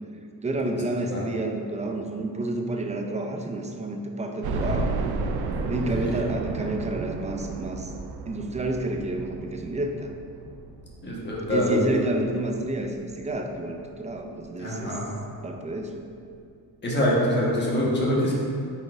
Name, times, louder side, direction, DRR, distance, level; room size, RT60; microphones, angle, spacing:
voice 1, 0.4-4.9 5.7-7.9 8.3-10.1 11.5-15.0 15.4-16.0, right 2 dB, 20° right, 3 dB, 0.4 m, -29 dB
sound 1, 4.4-13.3 13.8-13.9 14.3-14.4 15.6-15.7 16.0-16.1, right 3 dB, 80° right, 0.6 m, -32 dB
voice 2, 11.0-11.9 14.6-15.1 16.8-18.3, equal, 30° left, -5 dB, 1.3 m, -25 dB
9.1 x 4.2 x 2.5 m, 2.3 s
cardioid pair, 125°, 37 cm